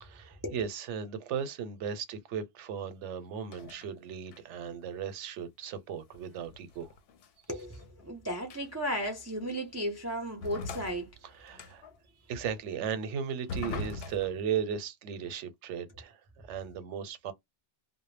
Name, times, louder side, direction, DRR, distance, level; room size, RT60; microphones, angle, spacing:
voice 1, 0.0-6.9 11.2-11.9 12.3-16.2 16.5-17.3, right 7 dB, 85° right, 0.9 m, -36 dB
sound 1, 3.5-3.9 4.3-4.6 6.1-8.1 8.5-8.9 9.5-9.6 10.4-12.0 13.5-14.4, left 3 dB, 65° left, 0.7 m, -41 dB
voice 2, 7.5-11.1, equal, 20° right, 0.4 m, -35 dB
2.1 x 2.0 x 3.1 m
omnidirectional pair, 1.2 m